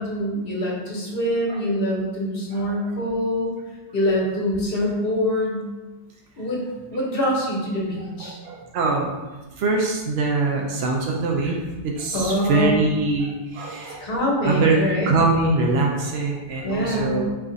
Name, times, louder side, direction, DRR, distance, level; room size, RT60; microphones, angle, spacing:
voice 1, 0.0-3.5 3.9-5.6 6.4-6.6 6.9-8.4 12.1-12.8 14.0-15.1 16.6-17.2, left 1 dB, 65° left, -3 dB, 1.3 m, -24 dB
voice 2, 2.5-2.8 8.2-9.1 9.6-14.1 14.4-14.8 15.1-17.3, right 3 dB, 90° right, 0 dB, 0.8 m, -23 dB
4.7 x 2.4 x 3.8 m, 1.2 s
omnidirectional pair, 1.1 m